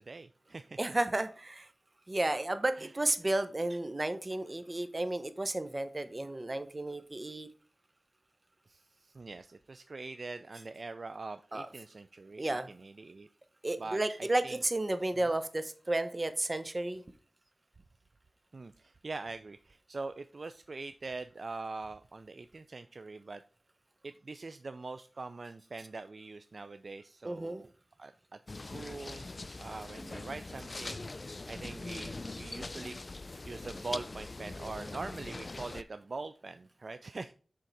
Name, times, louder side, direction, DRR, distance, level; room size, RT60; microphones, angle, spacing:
voice 1, 0.0-0.8 2.8-2.9 8.7-13.3 13.8-14.6 18.5-23.4 24.0-27.7 28.0-28.1 28.5-29.3 29.6-31.1 31.5-33.0 33.5-37.3, right 3 dB, 65° right, 10 dB, 0.3 m, -43 dB
voice 2, 0.8-1.7 2.1-7.5 11.5-11.7 12.4-12.7 13.6-17.0 27.2-27.6, right 2 dB, 40° right, 11 dB, 0.9 m, -32 dB
sound 1, 28.5-35.8, left 2 dB, 50° left, 0.3 m, -42 dB
6.8 x 3.7 x 4.6 m, 0.41 s
cardioid pair, 45°, 0 cm